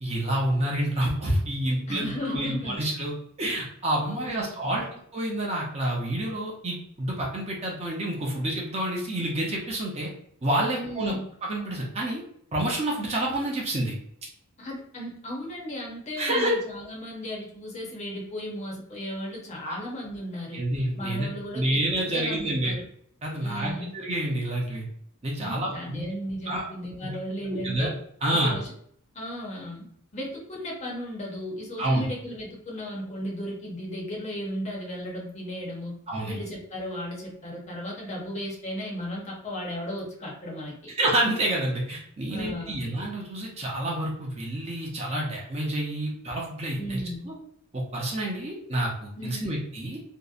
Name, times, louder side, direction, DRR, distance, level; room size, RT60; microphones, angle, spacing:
voice 1, 0.0-10.1 10.4-11.1 11.5-12.2 12.5-13.9 16.2-16.5 19.6-19.8 20.5-21.3 21.5-22.7 23.2-24.8 25.2-26.0 26.5-26.7 27.0-27.1 27.5-27.9 28.2-28.5 31.8-32.0 36.1-36.4 41.0-47.3 47.7-50.0, right 1 dB, 30° right, -2 dB, 0.5 m, -28 dB
voice 2, 1.9-2.8 4.0-4.9 10.7-11.3 14.6-20.6 21.0-21.8 22.1-22.8 23.4-23.9 25.4-27.9 28.3-28.7 29.1-29.9 30.1-36.0 36.2-40.9 42.3-42.8 46.8-47.3 49.2-49.5, equal, 30° left, -2 dB, 0.6 m, -35 dB
2.7 x 2.0 x 2.4 m, 0.66 s
head